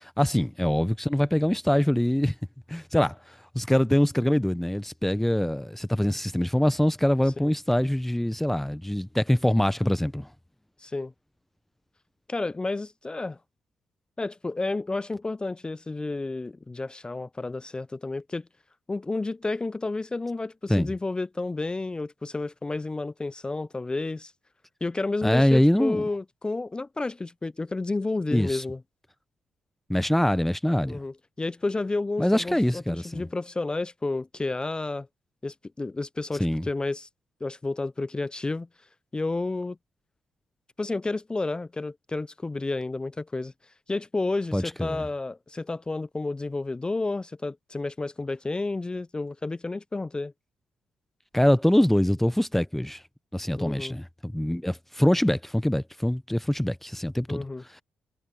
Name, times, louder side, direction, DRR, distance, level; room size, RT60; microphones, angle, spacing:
voice 1, 0.2-2.3 2.7-10.3 20.7-20.9 25.2-26.0 28.3-28.6 29.9-31.0 32.2-33.3 36.4-36.7 44.5-45.0 51.3-53.0 53.3-57.4 57.7-57.8, left 1 dB, 5° left, 0.8 m, -24 dB
voice 2, 10.8-11.1 12.3-13.4 14.2-18.5 18.9-24.3 24.8-28.8 30.9-35.1 35.4-37.1 37.4-38.7 39.1-39.8 40.8-43.5 43.9-50.3 53.6-54.0 57.3-57.6, left 3 dB, 20° left, 0.4 m, -31 dB
hypercardioid pair, 50°, 4 cm